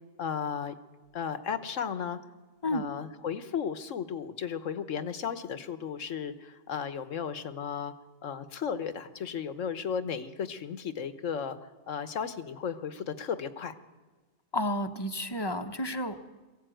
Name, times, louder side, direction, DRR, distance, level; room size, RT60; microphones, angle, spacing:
voice 1, 0.2-0.8 1.1-2.2 2.7-7.9 8.2-13.7, left 7 dB, 85° left, 12 dB, 1.4 m, -35 dB
voice 2, 14.5-16.3, left 1 dB, 20° left, 8 dB, 1.0 m, -31 dB
22.0 x 15.5 x 9.1 m, 1.3 s
omnidirectional pair, 1.3 m